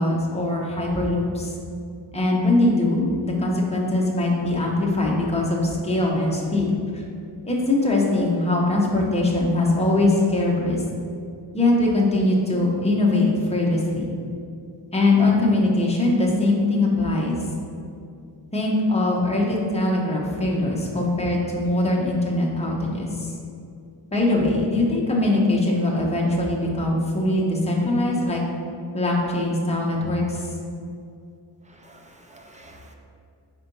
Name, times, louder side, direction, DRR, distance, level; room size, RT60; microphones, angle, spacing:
voice 1, 0.0-1.5 2.1-7.0 7.4-10.8 11.5-14.1 14.9-17.4 18.5-23.3 24.1-28.4 28.9-30.5, left 2 dB, 15° left, -3 dB, 0.8 m, -22 dB
voice 2, 31.7-32.9, right 1 dB, 15° right, 2 dB, 0.5 m, -49 dB
4.5 x 4.3 x 5.3 m, 2.4 s
wide cardioid pair, 165°, 45 cm